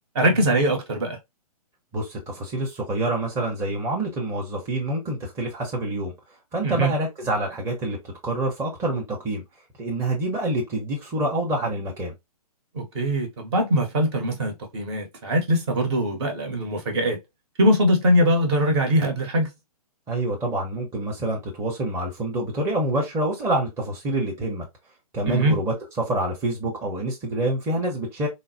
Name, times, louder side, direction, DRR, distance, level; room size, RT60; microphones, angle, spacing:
voice 1, 0.1-1.2 6.6-6.9 12.7-17.2 17.6-19.5 25.3-25.6, equal, 45° right, 1.1 m, -22 dB
voice 2, 1.9-6.1 6.5-8.0 8.2-9.4 9.8-12.1 20.1-24.6 25.1-28.3, right 1 dB, 15° right, 0.8 m, -27 dB
3.8 x 2.0 x 2.7 m
figure-of-eight pair, 130°, 20 cm